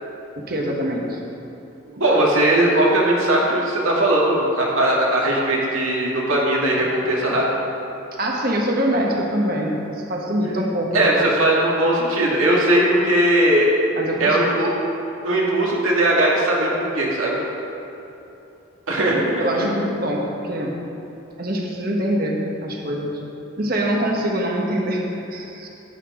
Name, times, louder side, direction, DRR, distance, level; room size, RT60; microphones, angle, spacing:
voice 1, 0.4-1.2 8.2-11.1 13.9-14.4 19.4-20.7 21.4-23.2 23.6-25.0 25.3-25.7, right 1 dB, 45° right, -1 dB, 1.3 m, -24 dB
voice 2, 1.9-7.5 10.9-13.7 14.2-14.7 15.2-17.4 18.9-19.4, right 1 dB, 80° right, -4 dB, 2.1 m, -19 dB
11.0 x 9.0 x 3.8 m, 2.9 s
head